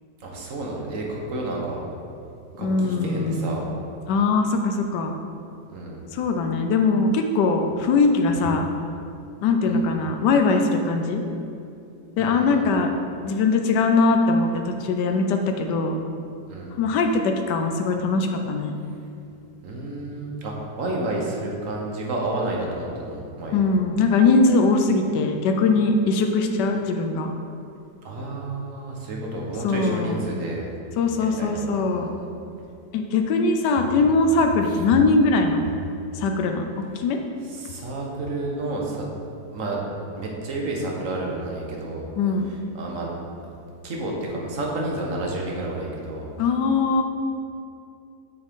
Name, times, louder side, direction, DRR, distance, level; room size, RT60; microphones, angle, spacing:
voice 1, 0.2-1.8 2.5-3.7 5.7-6.0 9.7-9.8 12.2-12.7 16.5-16.7 19.6-23.6 28.0-30.7 31.2-32.3 34.7-34.8 37.5-39.1 39.5-39.9 40.1-42.0 42.5-43.1 43.5-46.3, right 2 dB, 55° right, -2 dB, 1.5 m, -30 dB
voice 2, 2.6-3.6 4.1-5.2 6.1-8.7 9.4-11.2 12.2-12.9 13.2-16.0 16.8-18.7 23.5-27.3 29.6-30.2 31.0-32.1 32.9-35.7 36.1-36.7 37.0-37.2 42.2-42.5 46.4-47.0, left 3 dB, 85° left, 4 dB, 1.3 m, -21 dB
8.6 x 6.3 x 3.6 m, 2.6 s
omnidirectional pair, 1.8 m